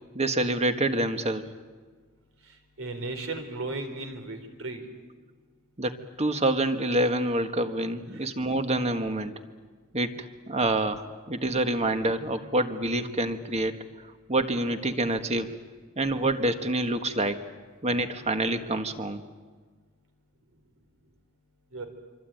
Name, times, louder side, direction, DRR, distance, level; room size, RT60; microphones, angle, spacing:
voice 1, 0.1-1.5 5.8-9.4 9.9-13.8 14.3-15.6 16.0-17.4 17.8-19.2, right 1 dB, 30° right, 8 dB, 1.6 m, -27 dB
voice 2, 2.8-4.8 8.1-8.2 21.7-21.9, right 2 dB, 70° right, 6 dB, 4.1 m, -35 dB
26.0 x 25.0 x 9.2 m, 1.5 s
head